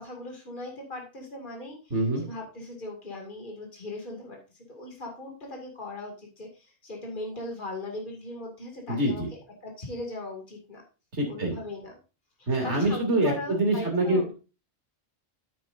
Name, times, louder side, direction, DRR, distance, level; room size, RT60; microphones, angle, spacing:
voice 1, 0.0-9.2 9.6-10.8 11.3-12.0 12.4-14.3, left 2 dB, 45° left, 1 dB, 2.5 m, -39 dB
voice 2, 1.9-2.2 8.9-9.3 11.1-11.5 12.5-14.3, right 1 dB, 85° right, 1 dB, 3.0 m, -25 dB
9.4 x 9.4 x 2.6 m, 0.31 s
omnidirectional pair, 1.1 m